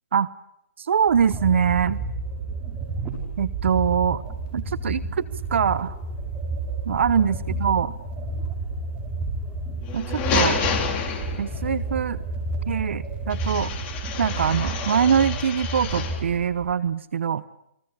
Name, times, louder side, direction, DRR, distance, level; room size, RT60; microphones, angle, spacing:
voice 1, 0.8-2.0 3.4-4.2 4.5-5.2 5.5-5.9 6.9-7.9 9.9-10.6 11.4-12.2 12.7-13.7 14.2-17.4, right 7 dB, 65° right, 17 dB, 1.1 m, -23 dB
sound 1, 1.1-16.7, right 2 dB, 15° right, 6.7 m, -31 dB
sound 2, 9.8-11.7 13.3-16.3, left 7 dB, 25° left, 4.3 m, -29 dB
29.5 x 22.0 x 8.6 m, 0.76 s
hypercardioid pair, 150°, 7 cm